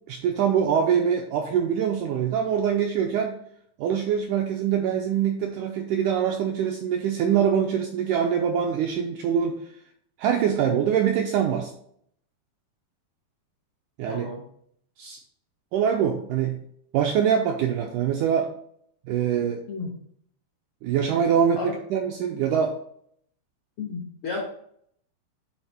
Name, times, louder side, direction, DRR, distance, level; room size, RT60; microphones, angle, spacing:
voice 1, 0.1-3.4 3.8-9.6 10.2-11.7 14.0-14.3 15.0-15.2 15.7-16.6 16.9-18.5 19.1-19.6 20.8-22.8, right 8 dB, 85° right, 2 dB, 1.8 m, -24 dB
voice 2, 14.1-14.4 19.7-19.9 21.6-21.8 23.8-24.4, left 4 dB, 75° left, -2 dB, 1.2 m, -32 dB
9.0 x 3.6 x 3.4 m, 0.67 s
omnidirectional pair, 4.2 m